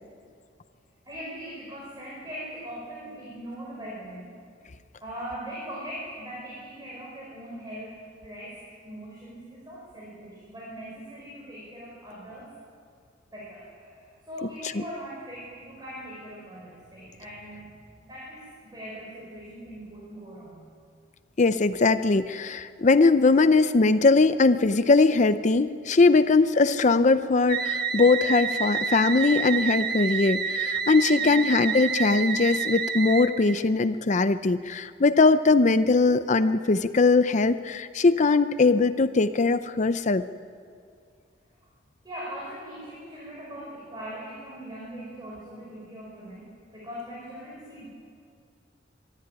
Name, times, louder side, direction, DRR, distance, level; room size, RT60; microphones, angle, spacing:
voice 1, 1.0-4.3 5.0-12.5 13.3-17.7 18.0-20.6 31.1-31.5 42.0-46.5 46.7-47.9, equal, 20° right, -6 dB, 5.6 m, -40 dB
voice 2, 21.4-40.2, left 3 dB, 40° left, 12 dB, 0.6 m, -21 dB
sound 1, 27.5-33.6, right 6 dB, 55° right, 1.2 m, -29 dB
24.5 x 13.5 x 9.7 m, 2.2 s
head